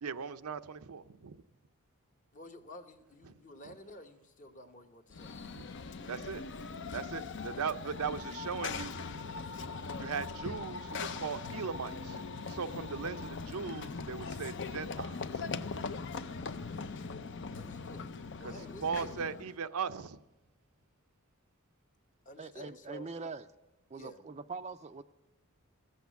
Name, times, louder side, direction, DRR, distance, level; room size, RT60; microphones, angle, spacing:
voice 1, 0.0-1.4 5.6-5.7 6.1-6.4 6.9-8.9 10.0-12.2 12.5-15.2 18.8-20.2, right 6 dB, 80° right, 0.6 m, -38 dB
voice 2, 2.3-5.3 7.8-8.0 16.6-16.9 17.5-19.2 22.2-23.1 23.9-24.2, left 1 dB, 35° left, 1.0 m, -51 dB
Run / Train, 5.1-19.5, left 4 dB, 55° left, 0.6 m, -40 dB
voice 3, 22.4-23.4 23.9-25.0, right 4 dB, 30° right, 0.4 m, -43 dB
14.5 x 8.3 x 8.1 m
head